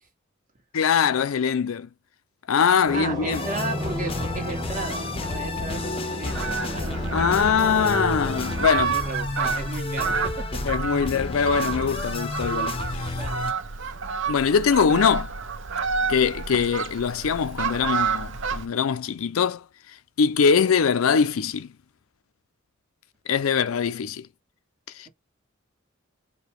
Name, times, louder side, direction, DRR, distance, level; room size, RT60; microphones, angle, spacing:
voice 1, 0.7-1.9 2.5-3.5 7.1-8.9 10.6-13.2 14.3-15.3 16.1-19.6 20.2-21.7 23.3-24.3 25.0-25.1, left 6 dB, 80° left, 0.5 m, -22 dB
sound 1, 2.9-8.7, equal, 20° right, 1.1 m, -33 dB
voice 2, 2.9-7.0 8.7-10.4 13.1-13.5 13.8-13.9, right 3 dB, 40° right, 1.4 m, -35 dB
sound 2, 3.3-13.5, left 3 dB, 25° left, 0.6 m, -32 dB
Fowl, 6.3-18.7, right 6 dB, 60° right, 0.8 m, -30 dB
4.9 x 2.3 x 4.7 m
head